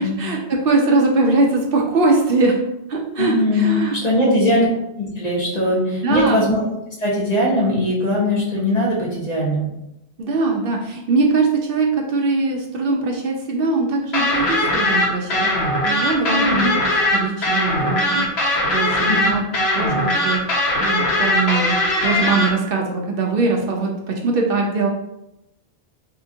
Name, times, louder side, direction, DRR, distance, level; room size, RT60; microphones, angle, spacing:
voice 1, 0.0-2.6 2.9-4.3 4.6-4.7 6.0-6.5 10.2-15.5 15.8-19.4 19.8-20.4 20.8-21.8 22.0-24.9, right 3 dB, 65° right, 0 dB, 0.7 m, -21 dB
voice 2, 3.2-4.7 5.0-6.7 7.0-9.6 16.3-16.7 19.1-19.4, left 1 dB, 40° left, -4 dB, 1.0 m, -20 dB
sound 1, 14.1-22.5, left 1 dB, 75° left, 1.0 m, -20 dB
3.7 x 2.8 x 2.6 m, 0.87 s
omnidirectional pair, 1.1 m